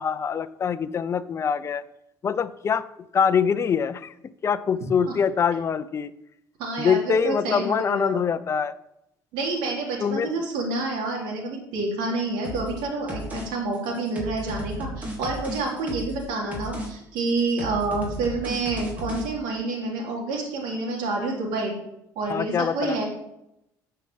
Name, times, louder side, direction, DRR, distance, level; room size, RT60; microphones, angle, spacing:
voice 1, 0.0-1.8 2.2-2.9 3.1-4.1 4.4-6.1 6.8-8.7 10.0-10.3 22.3-23.0, left 6 dB, 35° left, 12 dB, 0.7 m, -24 dB
voice 2, 6.6-8.2 9.3-21.7 22.1-23.0, right 3 dB, 85° right, -2 dB, 3.2 m, -28 dB
sound 1, 12.4-12.8 13.1-13.5 13.7-16.2 16.5-16.9 17.2-19.3, equal, 20° right, 4.0 m, -34 dB
10.0 x 5.7 x 7.6 m, 0.83 s
supercardioid pair, 90°, 8 cm